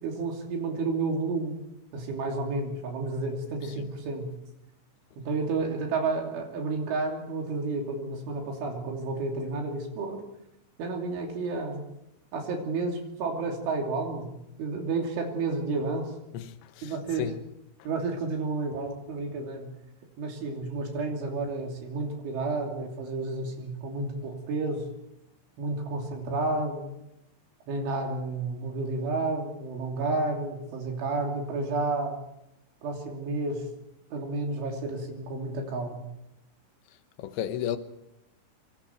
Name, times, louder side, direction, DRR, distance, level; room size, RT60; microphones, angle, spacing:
voice 1, 0.0-1.6 1.9-4.3 5.2-10.2 10.8-11.8 12.3-14.3 14.6-16.1 16.8-17.3 17.9-19.7 20.2-24.9 25.6-26.9 27.7-32.2 32.8-33.7 34.1-36.0, right 3 dB, 70° right, 5.2 m, -31 dB
voice 2, 16.3-16.9 17.2-17.4 37.2-37.8, left 11 dB, 75° left, 3.3 m, -32 dB
25.5 x 25.0 x 4.6 m
omnidirectional pair, 5.7 m